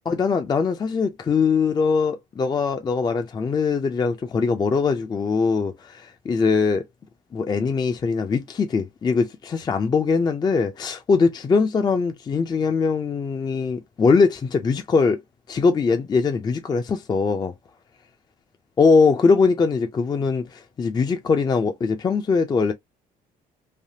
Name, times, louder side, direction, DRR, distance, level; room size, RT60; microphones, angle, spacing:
voice 1, 0.1-6.8 7.3-15.2 15.5-17.5 18.8-22.7, left 4 dB, 25° left, 0.4 m, -21 dB
3.3 x 2.2 x 2.7 m
cardioid pair, 110°, 17 cm